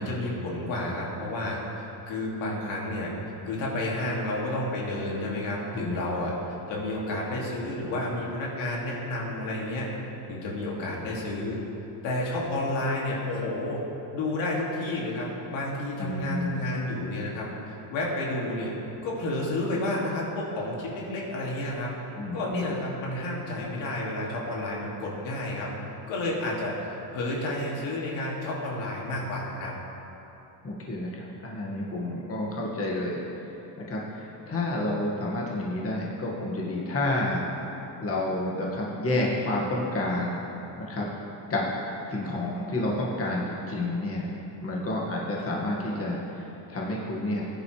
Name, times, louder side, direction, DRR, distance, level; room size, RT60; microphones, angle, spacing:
voice 1, 0.0-3.1 3.4-9.9 10.3-11.6 12.0-13.8 14.1-18.7 19.0-21.9 22.3-25.7 26.1-29.7, left 1 dB, 80° left, -4 dB, 2.7 m, -31 dB
voice 2, 16.0-16.7 22.2-22.7 30.6-33.2 33.9-37.4 38.0-40.5 40.8-41.1 41.5-41.7 42.1-44.3 44.6-46.4 46.7-47.4, left 1 dB, 30° left, -4 dB, 2.0 m, -30 dB
17.0 x 10.5 x 3.4 m, 3.0 s
cardioid pair, 125°, 46 cm